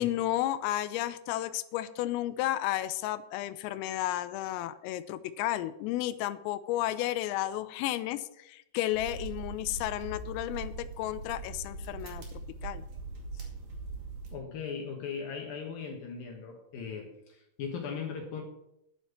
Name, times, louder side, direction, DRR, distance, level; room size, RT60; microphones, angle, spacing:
voice 1, 0.0-12.8, left 14 dB, 85° left, 14 dB, 3.2 m, -32 dB
sound 1, 8.9-14.3, right 3 dB, 45° right, 2.7 m, -41 dB
voice 2, 14.3-18.4, left 6 dB, 70° left, 2 dB, 2.3 m, -38 dB
11.0 x 7.3 x 7.2 m, 0.83 s
omnidirectional pair, 5.9 m